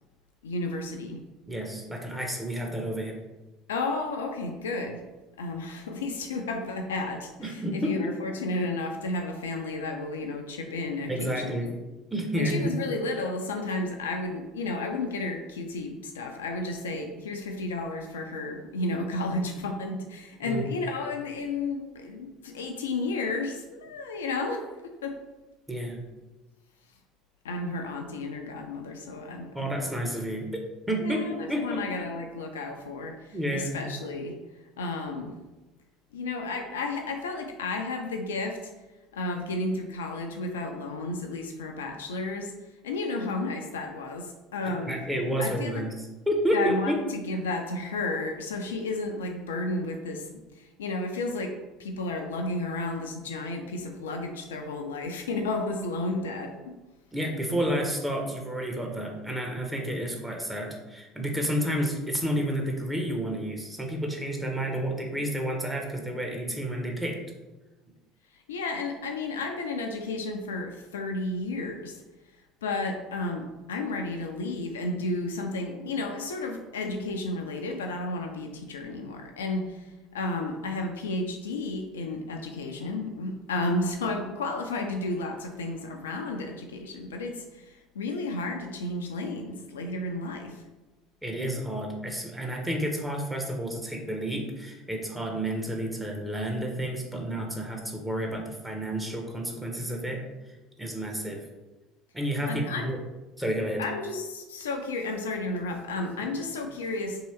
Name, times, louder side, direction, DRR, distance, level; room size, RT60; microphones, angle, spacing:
voice 1, 0.4-1.2 3.7-5.0 5.4-11.6 12.3-24.6 25.0-25.1 27.4-29.7 31.0-34.3 34.8-35.3 36.1-38.7 39.1-42.5 42.8-45.0 45.4-45.8 46.5-51.5 51.8-56.7 68.5-72.0 72.6-79.9 80.1-90.6 102.5-102.9 103.8-107.2, left 2 dB, 75° left, 3 dB, 0.3 m, -32 dB
voice 2, 1.5-3.2 7.4-8.1 11.1-11.7 12.1-12.8 20.4-20.6 25.7-26.0 29.5-30.5 30.9-31.8 33.3-33.8 44.6-47.0 57.1-67.2 91.2-100.2 100.8-101.4 102.1-103.0 103.4-103.8, equal, 10° right, 0 dB, 0.7 m, -30 dB
2.9 x 2.7 x 3.1 m, 1.1 s
figure-of-eight pair, 65°, 0 cm